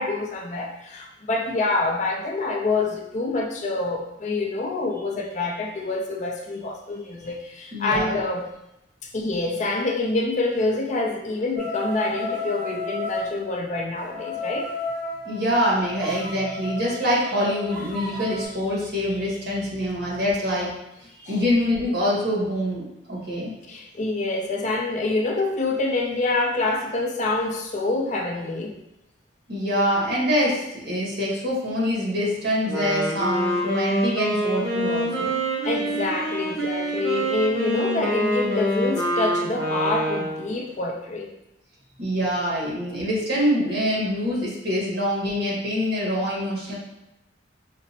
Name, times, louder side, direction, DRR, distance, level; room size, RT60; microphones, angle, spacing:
voice 1, 0.0-8.5 9.1-14.7 21.3-21.4 23.7-28.8 35.6-41.3, left 2 dB, 40° left, 1 dB, 0.5 m, -26 dB
voice 2, 7.7-8.2 15.2-20.7 21.2-23.5 29.5-35.4 42.0-46.7, equal, 65° right, -6 dB, 1.5 m, -25 dB
sound 1, 11.6-13.3 14.0-18.4, left 2 dB, 15° right, 0.8 m, -32 dB
Wind instrument woodwind instrument, 32.5-40.5, right 1 dB, 85° right, 0.9 m, -26 dB
5.1 x 2.0 x 2.8 m, 0.88 s
head